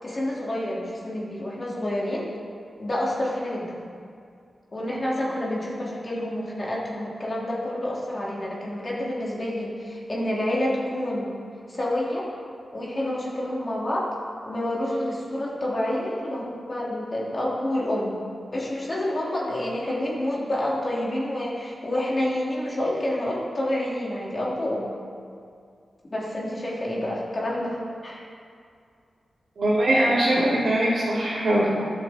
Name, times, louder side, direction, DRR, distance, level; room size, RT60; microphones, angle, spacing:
voice 1, 0.0-2.2 2.8-3.8 4.7-11.3 11.7-12.3 12.7-14.1 14.4-18.2 18.5-24.9 26.1-27.8 28.0-28.2, left 1 dB, 35° left, -5 dB, 3.0 m, -28 dB
voice 2, 29.6-31.7, right 1 dB, 70° right, -11 dB, 2.7 m, -21 dB
14.0 x 6.9 x 4.4 m, 2.3 s
cardioid pair, 70°, 0 cm